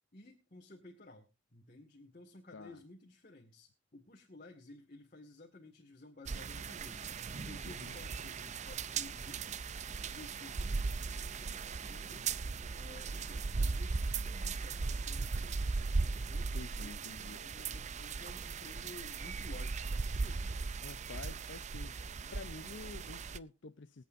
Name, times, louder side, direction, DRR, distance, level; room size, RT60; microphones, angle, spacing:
voice 1, 0.1-9.7 10.0-12.3 12.7-20.6, left 2 dB, 45° left, 1.9 m, -55 dB
sound 1, 6.3-23.4, right 4 dB, 40° right, 0.5 m, -38 dB
voice 2, 7.6-8.0 16.5-17.5 20.8-22.0 22.3-24.0, left 3 dB, 70° left, 0.7 m, -49 dB
23.0 x 8.4 x 2.6 m
head